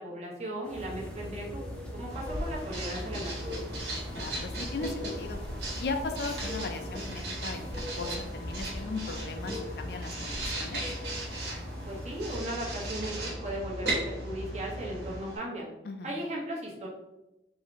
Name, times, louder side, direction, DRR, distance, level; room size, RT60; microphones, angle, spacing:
voice 1, 0.0-3.6 11.9-15.7 16.0-16.9, right 1 dB, 40° right, -3 dB, 0.9 m, -37 dB
sound 1, 0.6-12.4, left 1 dB, 5° left, 0.5 m, -43 dB
sound 2, 0.7-15.2, equal, 85° right, 1.4 m, -40 dB
Writing, 2.1-15.4, right 2 dB, 70° right, 1.4 m, -39 dB
voice 2, 4.1-5.4 5.8-10.8 15.8-16.2, left 3 dB, 60° left, 6 dB, 0.4 m, -37 dB
3.8 x 2.6 x 3.0 m, 0.94 s
head